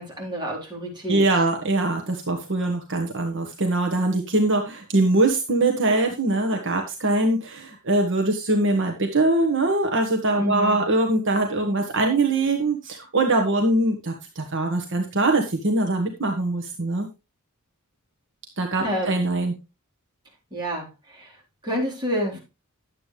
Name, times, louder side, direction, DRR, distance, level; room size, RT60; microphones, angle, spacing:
voice 1, 0.0-1.3 10.4-10.8 18.8-19.2 20.5-22.4, equal, 20° right, -3 dB, 4.2 m, -29 dB
voice 2, 1.1-17.1 18.6-19.5, right 2 dB, 60° right, 4 dB, 1.5 m, -22 dB
11.0 x 8.3 x 3.4 m, 0.27 s
head